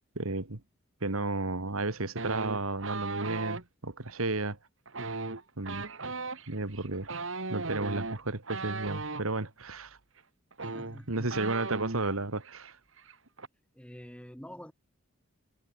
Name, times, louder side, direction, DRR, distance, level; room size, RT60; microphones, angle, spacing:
voice 1, 0.2-0.6 1.0-4.6 5.6-5.9 6.5-7.1 7.5-10.0 11.1-12.8, right 2 dB, 80° right, 2.2 m, -33 dB
sound 1, 2.2-3.6 4.9-9.2 10.2-10.3 10.5-12.2 12.4-12.7 13.0-13.5, right 3 dB, 65° right, 2.0 m, -37 dB
voice 2, 10.6-11.6 13.7-14.7, equal, 5° left, 5.6 m, -47 dB
head